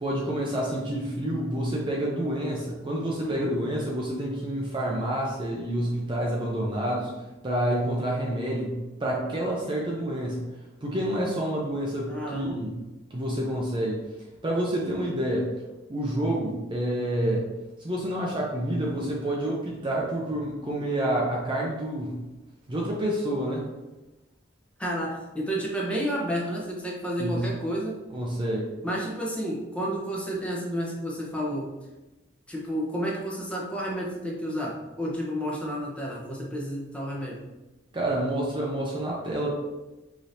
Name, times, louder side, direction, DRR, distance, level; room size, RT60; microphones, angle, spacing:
voice 1, 0.0-7.1 7.4-10.5 10.8-12.8 13.1-14.0 14.4-15.5 15.9-17.5 17.8-22.2 22.7-23.7 27.2-27.5 28.1-28.7 37.9-39.5, right 1 dB, 25° right, -3 dB, 0.5 m, -28 dB
voice 2, 3.2-3.6 12.1-12.6 24.8-28.0 28.8-31.7 32.5-37.4, equal, 5° left, -4 dB, 0.8 m, -31 dB
4.9 x 2.8 x 2.7 m, 1.1 s
head